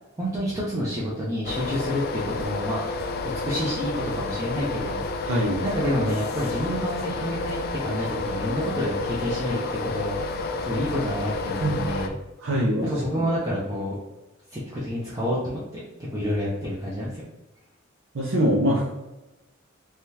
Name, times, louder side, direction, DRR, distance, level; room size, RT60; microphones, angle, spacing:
voice 1, 0.2-2.8 3.4-5.0 5.6-10.2 10.6-12.1 12.8-14.0 14.5-15.8 16.1-17.2, equal, 20° right, -7 dB, 0.6 m, -28 dB
sound 1, 1.4-12.1, left 3 dB, 50° left, 0.3 m, -30 dB
voice 2, 5.3-5.6 11.6-11.8 12.4-12.8 18.1-18.9, equal, 70° right, -4 dB, 0.6 m, -23 dB
3.5 x 2.3 x 2.8 m, 0.99 s
head